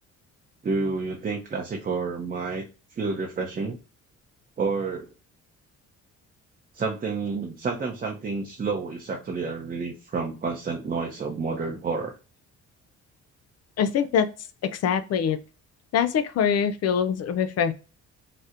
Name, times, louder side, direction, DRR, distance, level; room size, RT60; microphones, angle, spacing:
voice 1, 0.6-2.7 3.0-3.8 4.6-5.1 6.7-12.2, right 4 dB, 30° right, 0.6 m, -29 dB
voice 2, 13.8-14.3 14.8-15.4 15.9-17.7, left 7 dB, 55° left, 0.4 m, -23 dB
4.1 x 2.0 x 2.4 m
cardioid pair, 90°, 30 cm